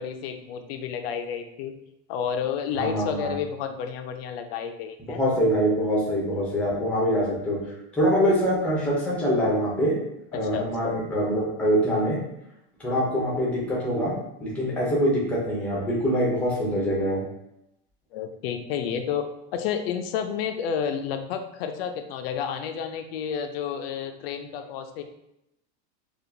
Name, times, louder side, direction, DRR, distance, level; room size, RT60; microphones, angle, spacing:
voice 1, 0.0-1.7 2.1-5.2 10.3-11.0 18.1-19.3 19.5-25.0, left 7 dB, 60° left, 6 dB, 0.5 m, -30 dB
voice 2, 2.7-3.3 5.0-7.6 7.9-9.9 10.3-12.2 12.8-14.1 14.4-17.2, equal, 5° left, -5 dB, 0.6 m, -24 dB
4.4 x 2.4 x 2.6 m, 0.84 s
supercardioid pair, 180°, 34 cm